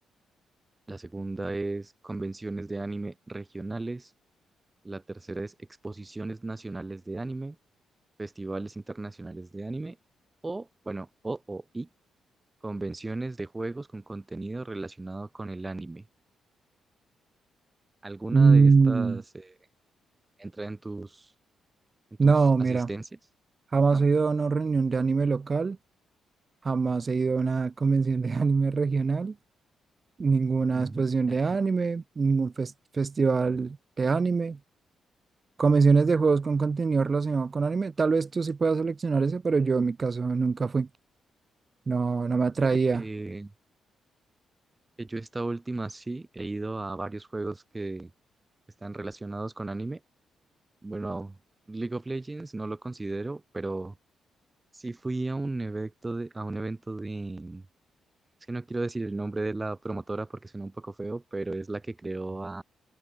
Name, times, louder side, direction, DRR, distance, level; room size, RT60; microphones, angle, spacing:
voice 1, 0.9-4.1 4.8-5.5 5.8-7.6 8.2-10.0 10.4-11.9 12.6-16.0 18.0-19.5 20.4-21.3 22.2-22.3 22.7-23.1 23.9-24.0 30.7-31.6 42.6-43.5 45.0-48.1 48.8-50.0 50.8-51.3 51.7-53.9 54.7-57.6 58.5-62.6, right 2 dB, 20° right, 3.2 m, -35 dB
voice 2, 18.3-19.2 22.2-22.9 23.7-25.8 26.6-29.3 30.2-34.6 35.6-40.9 41.9-43.0, right 4 dB, 40° right, 1.2 m, -24 dB
cardioid pair, 75°, 0 cm